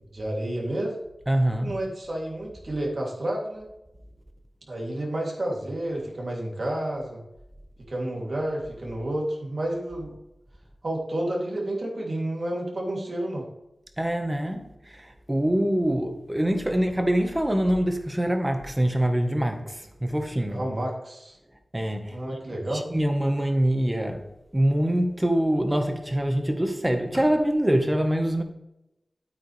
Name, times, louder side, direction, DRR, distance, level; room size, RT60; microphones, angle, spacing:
voice 1, 0.1-1.0 1.6-3.7 4.7-7.2 7.9-10.2 10.8-13.4 20.5-21.4 22.1-22.8, right 1 dB, 65° right, 3.0 m, -30 dB
voice 2, 1.3-1.7 14.0-20.6 21.7-22.4 22.7-24.3 24.5-28.4, right 1 dB, 20° right, 1.4 m, -24 dB
9.3 x 8.7 x 3.4 m
cardioid pair, 45°, 0 cm